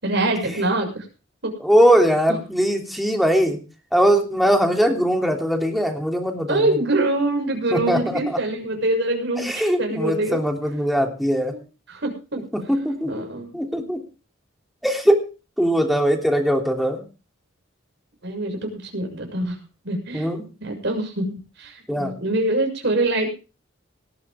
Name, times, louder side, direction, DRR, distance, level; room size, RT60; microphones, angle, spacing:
voice 1, 0.0-1.0 6.5-10.4 11.9-12.4 13.1-13.5 18.2-19.6 19.8-20.3 20.6-23.3, right 2 dB, 60° right, 3 dB, 6.6 m, -24 dB
voice 2, 1.6-3.6 3.9-6.7 7.7-8.4 9.4-11.5 12.5-13.1 13.5-14.0 14.8-15.3 15.6-17.0 20.1-20.5 21.9-22.1, equal, ahead, 3 dB, 3.2 m, -20 dB
18.5 x 13.5 x 3.7 m, 0.33 s
head